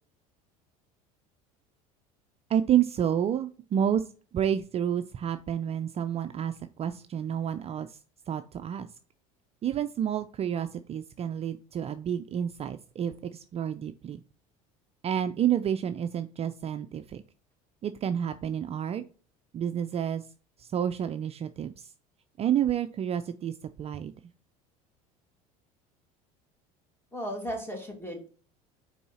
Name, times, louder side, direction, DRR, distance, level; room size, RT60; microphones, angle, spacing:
voice 1, 2.5-8.0 8.3-8.9 9.6-14.2 15.0-17.2 17.8-19.0 19.5-20.3 20.6-21.9 22.4-24.1, right 9 dB, 35° right, 10 dB, 0.4 m, -29 dB
voice 2, 27.1-28.3, equal, 10° left, 3 dB, 2.6 m, -35 dB
5.3 x 4.8 x 4.2 m, 0.40 s
hypercardioid pair, 80°, 18 cm